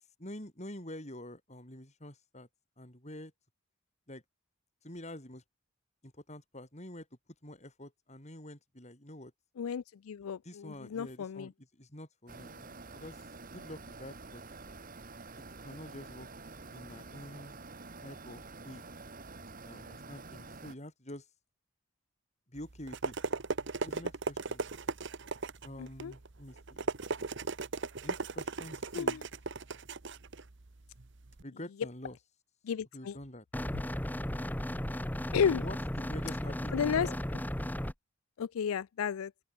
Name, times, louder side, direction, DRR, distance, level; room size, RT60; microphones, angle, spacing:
voice 1, 0.2-2.5 2.8-3.3 4.1-4.2 4.8-5.4 6.0-7.1 7.4-9.3 10.4-13.2 13.5-14.4 15.3-16.3 16.7-17.6 18.0-18.8 19.6-21.3 22.5-23.1 23.8-24.7 25.6-26.9 28.0-29.2 31.4-32.2 32.9-33.4 35.1-37.2, left 1 dB, 30° left, 6.8 m, -47 dB
voice 2, 9.6-11.5 25.8-26.1 28.9-29.2 32.6-33.2 35.3-35.6 36.7-37.1 38.4-39.3, left 7 dB, 85° left, 0.4 m, -32 dB
sound 1, 12.3-20.8, right 3 dB, 40° right, 1.9 m, -48 dB
sound 2, 22.6-31.4, right 3 dB, 60° right, 1.1 m, -37 dB
sound 3, 33.5-37.9, equal, 10° left, 1.0 m, -35 dB
open air
head